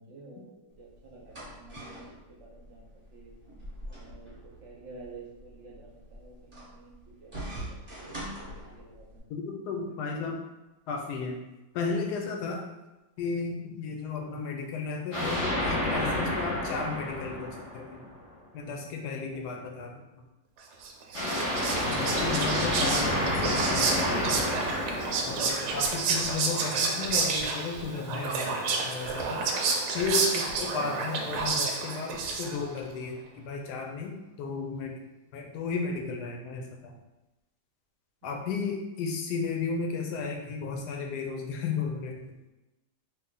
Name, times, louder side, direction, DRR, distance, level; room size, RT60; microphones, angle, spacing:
voice 1, 0.0-3.3 3.9-9.3 9.9-10.3 19.6-19.7 38.2-38.5, right 3 dB, 55° right, -2 dB, 0.9 m, -51 dB
sound 1, 0.7-9.2, right 1 dB, 20° right, 1.2 m, -44 dB
voice 2, 9.3-10.4 10.9-11.4 11.7-12.6 13.2-18.0 18.5-20.0 21.9-24.1 25.3-29.6 29.9-35.0 35.3-36.9 38.2-42.2, left 4 dB, 75° left, 2 dB, 1.1 m, -34 dB
sound 2, 15.1-18.2 21.1-26.3, left 1 dB, 50° left, 1.0 m, -30 dB
Whispering, 20.8-32.8, right 4 dB, 75° right, 1.1 m, -30 dB
3.3 x 2.5 x 3.7 m, 1.0 s
omnidirectional pair, 1.8 m